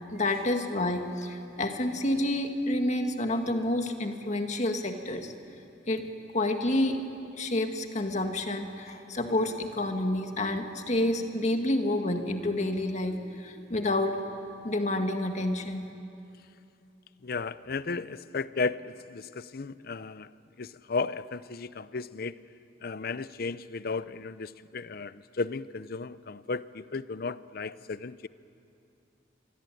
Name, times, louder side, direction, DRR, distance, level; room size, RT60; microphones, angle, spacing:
voice 1, 0.1-5.3 5.9-6.0 6.3-7.0 7.4-14.2 14.6-15.8, left 1 dB, 40° left, 5 dB, 1.9 m, -29 dB
voice 2, 17.2-20.3 20.6-22.3 22.8-28.3, left 4 dB, 60° left, 16 dB, 0.7 m, -34 dB
26.5 x 23.0 x 9.2 m, 2.7 s
head